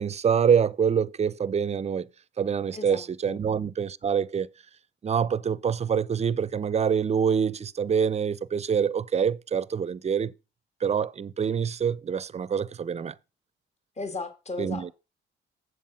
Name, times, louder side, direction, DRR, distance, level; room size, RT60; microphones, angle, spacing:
voice 1, 0.0-2.1 2.4-4.5 5.0-10.3 10.8-13.1 14.6-14.9, right 7 dB, 35° right, 0.5 m, -25 dB
voice 2, 2.7-3.4 14.0-14.9, left 3 dB, 35° left, 1.9 m, -36 dB
8.1 x 7.3 x 5.4 m
cardioid pair, 90°, 20 cm